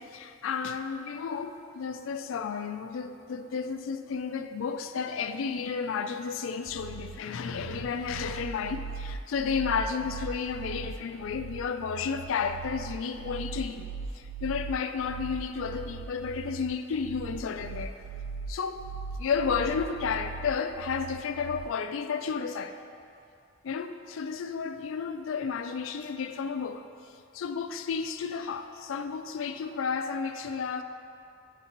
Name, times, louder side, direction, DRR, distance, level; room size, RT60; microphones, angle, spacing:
voice 1, 0.0-13.9 14.1-17.9 18.5-18.8 19.2-22.8 23.6-26.8 27.3-30.8, left 6 dB, 75° left, 8 dB, 0.3 m, -32 dB
sound 1, 6.7-21.7, right 5 dB, 85° right, 0.3 m, -39 dB
9.9 x 4.0 x 2.9 m, 2.6 s
head